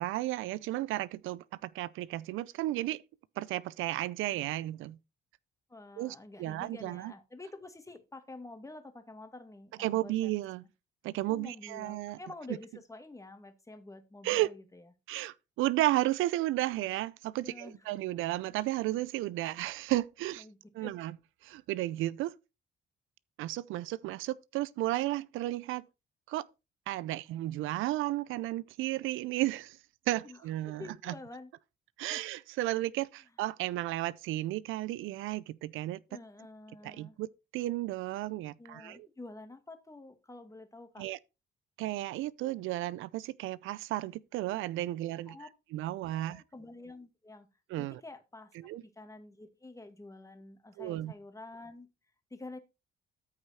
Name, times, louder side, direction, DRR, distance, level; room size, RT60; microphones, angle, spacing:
voice 1, 0.0-3.0 3.4-5.0 6.0-7.1 9.8-10.6 11.0-12.2 14.2-14.5 15.1-20.5 20.7-21.1 21.4-22.3 23.4-25.8 26.3-26.4 26.9-29.8 30.1-31.1 32.0-36.0 36.8-37.3 37.5-39.1 41.0-41.2 41.8-45.4 45.7-46.4 47.7-48.0 48.6-48.8 50.8-51.1, right 16 dB, 90° right, 0.5 m, -33 dB
voice 2, 5.7-10.3 11.3-14.8 17.4-17.8 20.4-20.9 30.2-30.4 30.7-31.5 32.1-32.2 36.1-37.2 38.6-41.1 45.3-45.5 46.1-47.5 47.8-48.5 48.8-51.9 52.3-52.6, left 2 dB, 15° left, 1.9 m, -48 dB
13.5 x 4.9 x 4.2 m
cardioid pair, 90°, 20 cm